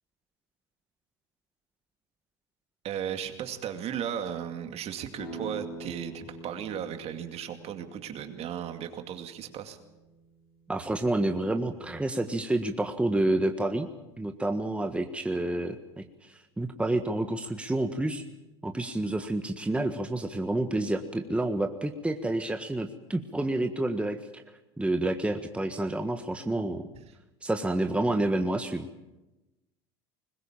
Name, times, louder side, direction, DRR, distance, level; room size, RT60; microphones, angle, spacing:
voice 1, 2.8-9.8, right 9 dB, 50° right, 7 dB, 2.4 m, -36 dB
sound 1, 5.2-10.7, right 2 dB, 75° left, 6.3 m, -45 dB
voice 2, 10.7-13.9 14.2-18.2 18.6-24.4 24.8-26.8 27.4-28.9, right 1 dB, 10° right, 6 dB, 1.6 m, -29 dB
21.5 x 20.0 x 7.4 m, 1.0 s
hypercardioid pair, 80°, 14 cm